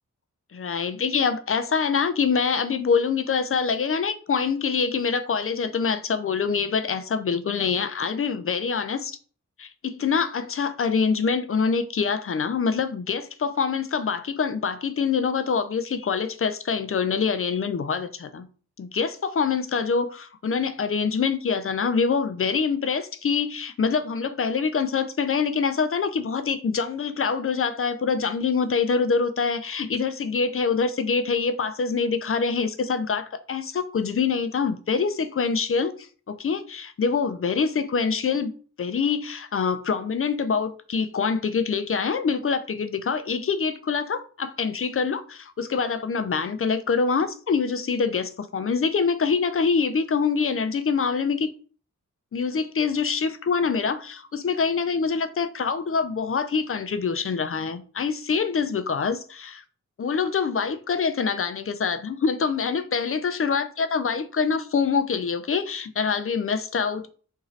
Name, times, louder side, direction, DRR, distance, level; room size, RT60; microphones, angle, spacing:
voice 1, 0.5-9.2 9.6-18.5 18.8-38.5 38.8-51.5 52.3-59.6 60.0-67.1, left 5 dB, 45° left, 0.4 m, -25 dB
3.0 x 2.7 x 3.7 m
wide cardioid pair, 65°, 31 cm